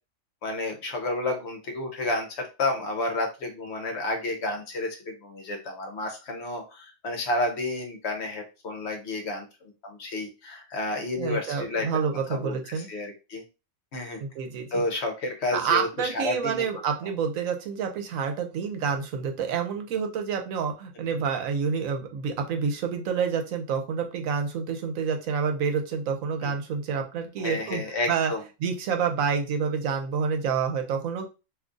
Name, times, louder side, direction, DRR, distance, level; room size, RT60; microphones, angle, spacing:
voice 1, 0.4-11.9 12.3-13.4 13.9-14.2 14.7-16.6 21.1-21.2 26.4-26.5 27.4-28.4, left 2 dB, 60° left, 3 dB, 0.9 m, -31 dB
voice 2, 11.2-12.9 14.2-14.8 15.5-27.8 28.1-28.3 28.6-31.3, right 6 dB, 85° right, 5 dB, 1.1 m, -28 dB
2.7 x 2.4 x 3.7 m, 0.30 s
omnidirectional pair, 1.4 m